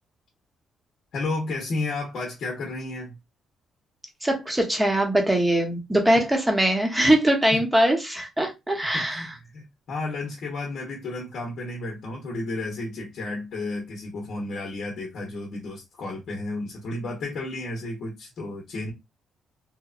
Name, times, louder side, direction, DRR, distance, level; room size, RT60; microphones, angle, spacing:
voice 1, 1.1-3.2 7.5-7.6 8.9-18.9, left 2 dB, 65° left, 0.8 m, -32 dB
voice 2, 4.2-9.3, right 1 dB, 10° right, 0.8 m, -22 dB
2.9 x 2.1 x 2.4 m
cardioid pair, 90°, 0 cm